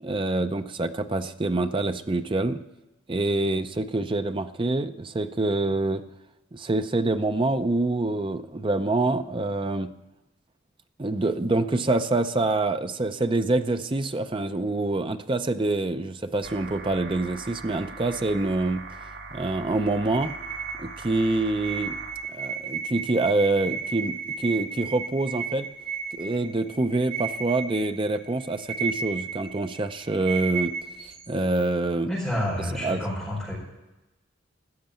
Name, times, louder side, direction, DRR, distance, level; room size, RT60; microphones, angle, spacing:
voice 1, 0.0-2.6 3.1-6.0 6.5-9.9 11.0-18.8 19.3-20.3 20.8-22.0 22.3-25.7 26.1-30.7 31.3-32.1 32.8-33.0, right 2 dB, 25° right, 9 dB, 0.5 m, -26 dB
sound 1, 16.4-22.1, right 3 dB, 80° right, 3.3 m, -41 dB
sound 2, 20.1-31.7, right 6 dB, 55° right, 3.9 m, -34 dB
voice 2, 32.1-33.5, left 1 dB, ahead, -8 dB, 4.9 m, -29 dB
15.5 x 6.7 x 8.9 m, 1.0 s
head